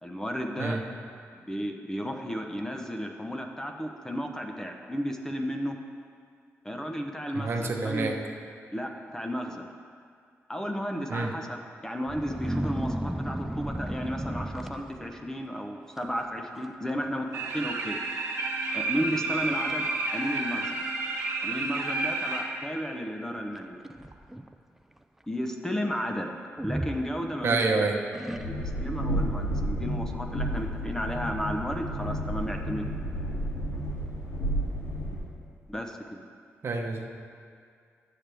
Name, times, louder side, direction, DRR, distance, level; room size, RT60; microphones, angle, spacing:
voice 1, 0.0-0.8 1.3-5.8 6.6-8.1 8.7-9.7 10.5-18.0 18.7-20.8 21.4-23.8 25.3-26.3 26.6-27.7 28.4-33.0 35.7-36.0, equal, 10° left, 3 dB, 0.8 m, -33 dB
voice 2, 7.3-8.1 11.1-11.3 27.4-28.0 36.6-37.1, right 3 dB, 55° right, 2 dB, 0.9 m, -27 dB
sound 1, 12.1-15.3 16.0-16.2 16.5-17.0 17.2-17.3 18.1-18.2 18.7-18.8 19.3-19.8 20.6-20.7 23.6-24.6 26.6-27.6 28.1-28.9, right 1 dB, 5° right, 0.4 m, -34 dB
sound 2, 17.3-22.4, right 3 dB, 85° right, 1.2 m, -31 dB
Train, 28.3-35.2, equal, 80° left, 2.4 m, -31 dB
12.0 x 7.6 x 3.4 m, 2.2 s
cardioid pair, 85°, 5 cm